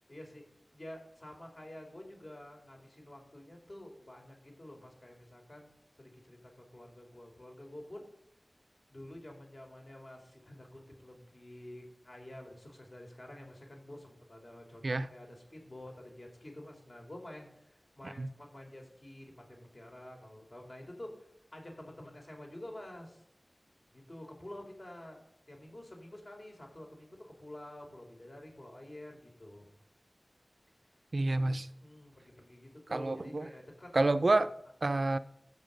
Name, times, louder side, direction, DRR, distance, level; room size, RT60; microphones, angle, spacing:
voice 1, 0.1-0.4 0.7-5.7 6.0-8.1 8.9-23.2 23.9-29.7 31.8-34.5, left 1 dB, 50° left, 3.8 m, -49 dB
voice 2, 31.1-31.7 32.9-33.5 33.9-34.5 34.8-35.2, right 2 dB, 70° right, 0.6 m, -28 dB
14.0 x 8.2 x 5.4 m
wide cardioid pair, 50°, 0 cm